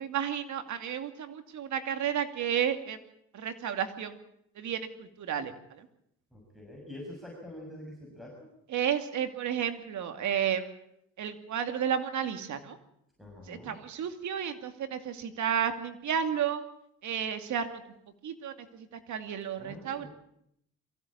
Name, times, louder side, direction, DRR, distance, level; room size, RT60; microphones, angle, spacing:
voice 1, 0.0-3.0 3.3-4.1 4.6-5.5 8.7-10.7 11.2-12.8 13.5-16.6 17.0-17.8 18.2-20.1, right 8 dB, 70° right, 8 dB, 2.5 m, -32 dB
voice 2, 6.3-8.5 13.2-13.8 19.6-20.1, left 1 dB, ahead, -2 dB, 6.6 m, -45 dB
23.0 x 16.5 x 8.7 m, 0.76 s
cardioid pair, 90°, 30 cm